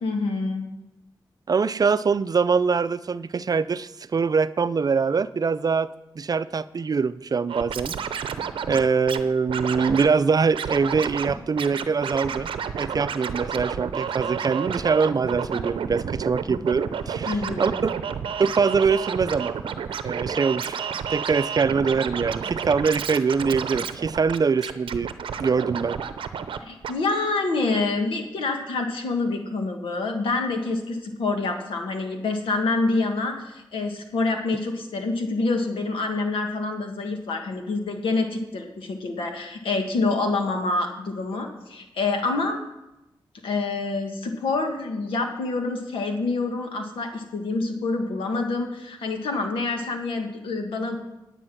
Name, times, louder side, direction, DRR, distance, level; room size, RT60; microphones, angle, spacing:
voice 1, 0.0-0.7 17.3-17.7 26.6-42.6 43.4-51.0, left 3 dB, 85° left, 4 dB, 1.6 m, -27 dB
voice 2, 1.5-5.9 6.2-7.9 8.6-12.5 12.8-17.9 18.4-19.6 20.0-20.8 21.1-25.1 25.4-26.0, right 5 dB, 45° right, 14 dB, 0.5 m, -23 dB
Scratching (performance technique), 7.5-9.2 9.5-10.1 10.5-11.3 11.6-26.6 26.8-26.9, right 7 dB, 85° right, 0.7 m, -30 dB
9.6 x 9.0 x 6.1 m, 0.94 s
cardioid pair, 55°, 9 cm